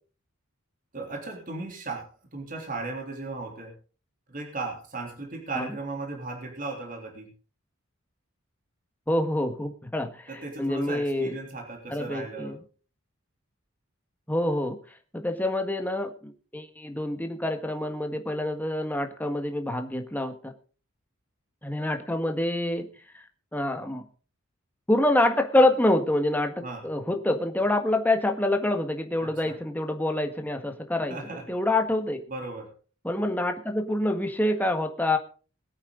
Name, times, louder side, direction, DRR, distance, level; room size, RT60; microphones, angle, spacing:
voice 1, 0.9-3.7 4.3-7.3 10.3-12.6 26.6-26.9 29.2-29.6 31.1-31.4 32.3-32.7, right 3 dB, 40° right, 1 dB, 3.4 m, -36 dB
voice 2, 9.1-11.3 11.9-12.6 14.3-14.8 15.1-20.5 21.6-22.9 23.1-23.2 23.5-24.0 24.9-31.2 31.5-32.2 33.0-35.2, left 1 dB, 10° left, 5 dB, 1.5 m, -26 dB
21.5 x 8.8 x 3.9 m, 0.38 s
head